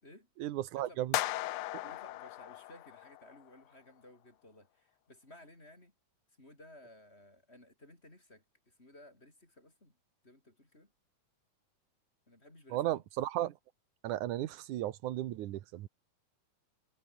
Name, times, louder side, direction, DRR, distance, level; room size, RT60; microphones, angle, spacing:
voice 1, 0.4-1.2 12.7-13.6 14.0-15.9, right 13 dB, 90° right, 2.6 m, -35 dB
sound 1, 1.1-3.4, left 17 dB, 75° left, 1.6 m, -37 dB
voice 2, 1.8-5.9 6.4-10.0 10.2-10.9 12.3-13.1, left 1 dB, 20° left, 6.1 m, -57 dB
omnidirectional pair, 3.4 m